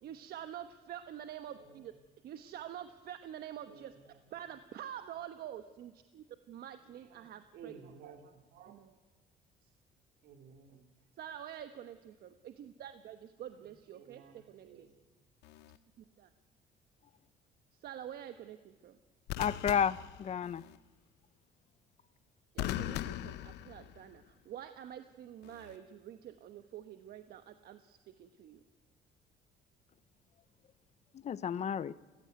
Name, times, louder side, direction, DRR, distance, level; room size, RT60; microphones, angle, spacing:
voice 1, 0.0-1.9 2.2-3.9 4.3-7.8 8.7-8.9 11.2-14.9 16.2-16.3 17.8-19.0 22.5-28.6, right 10 dB, 65° right, 9 dB, 1.2 m, -47 dB
voice 2, 1.5-1.9 3.6-4.2 6.8-8.8 10.2-10.9 13.5-14.9, right 6 dB, 80° right, 5 dB, 3.3 m, -56 dB
sound 1, 15.4-15.8 19.3-20.8 22.6-24.2 25.4-25.8, left 14 dB, 85° left, 0.9 m, -40 dB
voice 3, 19.4-20.6 31.1-31.9, left 8 dB, 40° left, 18 dB, 0.7 m, -32 dB
30.0 x 15.5 x 9.4 m, 1.3 s
cardioid pair, 110°, 17 cm